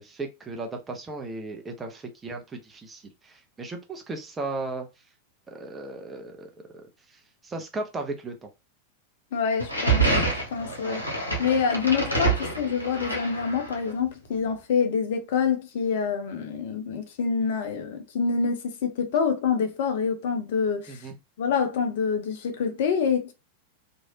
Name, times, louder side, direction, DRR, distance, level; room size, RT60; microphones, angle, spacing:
voice 1, 0.0-4.9 5.5-8.5 10.8-11.0 20.9-21.2, right 2 dB, 15° right, 0.7 m, -36 dB
voice 2, 9.3-10.1 10.5-11.0 11.4-21.1 21.4-23.3, left 6 dB, 55° left, 0.6 m, -26 dB
sound 1, 9.6-13.9, right 3 dB, 85° left, 1.0 m, -27 dB
3.1 x 2.6 x 2.7 m
figure-of-eight pair, 90°, 0 cm